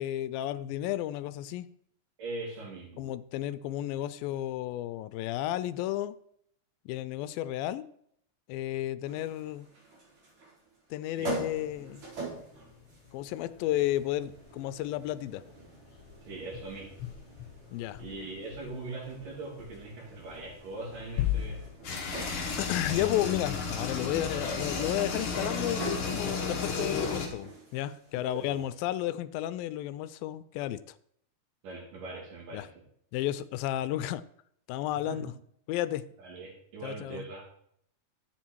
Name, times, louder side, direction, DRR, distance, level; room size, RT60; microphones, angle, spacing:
voice 1, 0.0-1.7 3.0-6.2 6.9-7.9 8.5-9.7 10.9-12.0 13.1-15.4 17.7-18.0 22.6-30.8 32.5-32.7 33.1-34.2 34.7-35.3 35.7-36.0 36.8-37.2, left 13 dB, 85° left, 16 dB, 2.3 m, -32 dB
voice 2, 2.2-3.1 11.1-11.4 16.2-16.9 18.0-21.6 22.9-23.1 28.2-28.6 31.6-32.8 35.1-35.2 36.2-37.4, right 3 dB, 65° right, -2 dB, 4.6 m, -41 dB
sound 1, 9.1-28.8, right 3 dB, 50° right, 4.9 m, -46 dB
sound 2, 11.3-21.7, left 12 dB, 65° left, 1.6 m, -41 dB
sound 3, 21.8-27.3, left 4 dB, 45° left, 2.1 m, -33 dB
11.5 x 7.9 x 4.6 m, 0.68 s
omnidirectional pair, 4.1 m